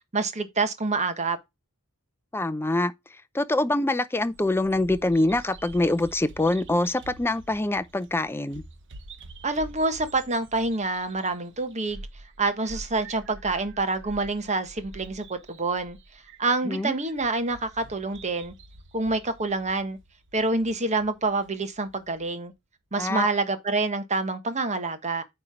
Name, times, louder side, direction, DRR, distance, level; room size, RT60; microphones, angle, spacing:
voice 1, 0.1-1.4 9.4-12.0 12.4-16.0 16.4-18.5 18.9-20.0 20.3-22.5 22.9-25.2, right 3 dB, 30° right, 1.1 m, -27 dB
voice 2, 2.3-2.9 3.3-8.6 16.7-16.9 23.0-23.3, left 2 dB, 10° left, 0.5 m, -25 dB
Bird vocalization bird call bird song, 4.2-22.3, right 2 dB, 55° right, 0.9 m, -47 dB
8.9 x 3.2 x 5.9 m
head